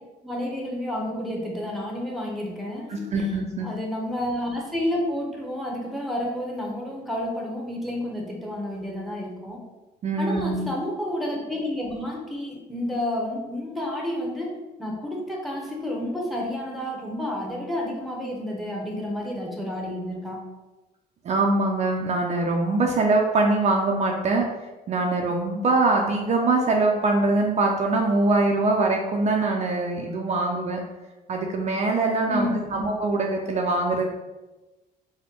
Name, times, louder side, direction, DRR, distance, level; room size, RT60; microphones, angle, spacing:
voice 1, 0.2-3.3 3.6-9.6 10.2-20.4 32.3-32.8, left 1 dB, ahead, -1 dB, 0.9 m, -30 dB
voice 2, 2.9-3.7 10.0-10.7 21.2-24.5 24.9-30.8 31.3-34.1, right 2 dB, 40° right, 0 dB, 0.5 m, -23 dB
4.2 x 2.2 x 4.4 m, 1.1 s
cardioid pair, 110°, 17 cm